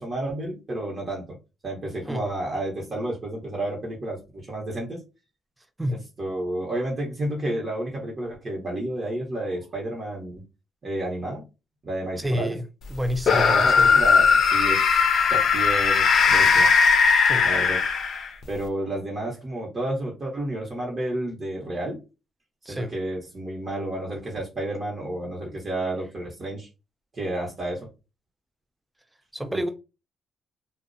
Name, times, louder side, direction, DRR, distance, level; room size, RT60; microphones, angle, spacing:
voice 1, 0.0-1.4 1.6-5.0 5.9-10.4 10.8-11.4 11.8-12.5 13.3-15.0 15.3-16.7 17.4-17.8 18.5-22.0 22.7-26.7 27.1-27.9 29.5-29.7, right 1 dB, 40° right, 0.9 m, -31 dB
voice 2, 12.2-12.6 12.9-13.9 17.2-17.5 22.7-22.9 29.3-29.7, equal, 10° right, 0.4 m, -28 dB
sound 1, 13.2-18.4, left 5 dB, 60° left, 0.4 m, -19 dB
2.4 x 2.1 x 2.5 m
cardioid pair, 90°, 0 cm